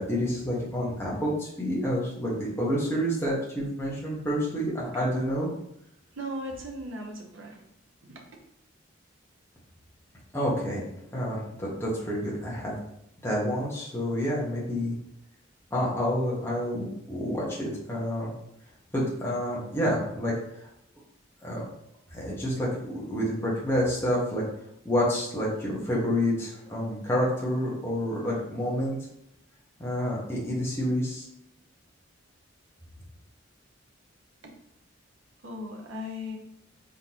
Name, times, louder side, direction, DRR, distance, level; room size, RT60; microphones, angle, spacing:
voice 1, 0.0-5.5 10.3-10.8 11.1-12.7 13.2-14.9 15.7-18.3 18.9-20.3 21.4-21.6 22.1-24.4 24.8-29.0 29.8-31.2, equal, 15° left, -6 dB, 1.2 m, -28 dB
voice 2, 6.1-7.6 8.0-8.2 34.4-34.5 35.4-36.4, left 1 dB, 85° right, 1 dB, 0.9 m, -37 dB
3.9 x 3.7 x 3.0 m, 0.76 s
head